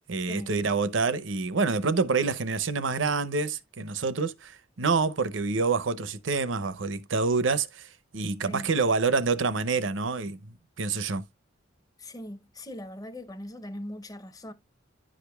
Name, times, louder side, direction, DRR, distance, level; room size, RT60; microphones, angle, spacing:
voice 1, 0.1-11.2, right 4 dB, 75° right, 0.7 m, -27 dB
voice 2, 12.0-14.5, left 1 dB, 20° left, 0.7 m, -40 dB
10.5 x 5.0 x 2.3 m
head